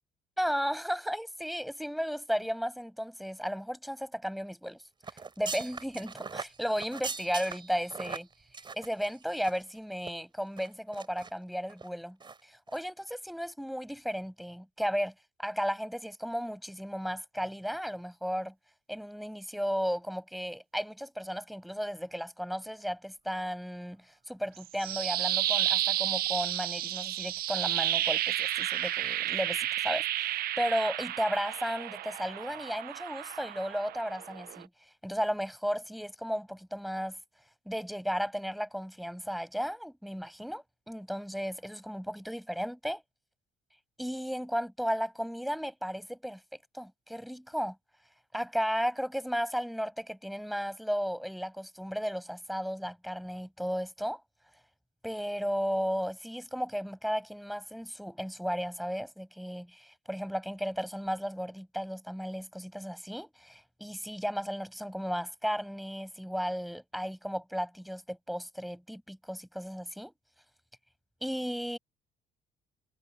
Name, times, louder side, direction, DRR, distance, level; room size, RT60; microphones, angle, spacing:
voice 1, 0.4-4.8 5.1-8.3 8.7-12.2 12.4-15.1 15.4-18.5 18.9-34.7 35.0-37.2 37.7-43.0 44.0-46.4 46.7-47.8 48.3-54.2 55.0-70.1 71.2-71.8, equal, ahead, 7.1 m, -34 dB
sound 1, 5.0-9.7 10.0-10.1 10.6-11.3 11.7-11.9 12.2-12.4 12.7-12.8, right 4 dB, 30° right, 4.2 m, -41 dB
sound 2, 24.6-34.6, right 13 dB, 65° right, 0.7 m, -32 dB
cardioid pair, 110°, 17 cm